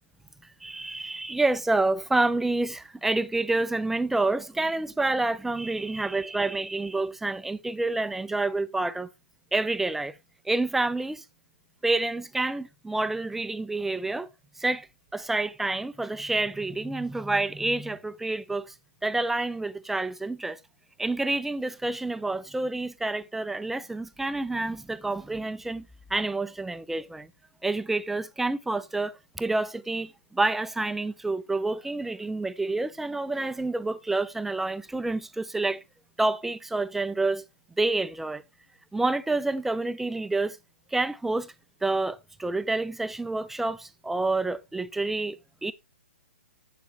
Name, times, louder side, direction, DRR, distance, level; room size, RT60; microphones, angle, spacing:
voice 1, 0.6-9.1 9.5-10.2 10.5-11.2 11.8-14.3 14.6-14.9 15.1-18.7 19.0-20.6 21.0-25.9 26.1-27.3 27.6-35.8 36.2-37.4 37.8-38.4 38.9-40.6 40.9-41.5 41.8-45.7, right 2 dB, 5° right, 0.3 m, -28 dB
7.5 x 6.9 x 3.1 m
figure-of-eight pair, 130°, 8 cm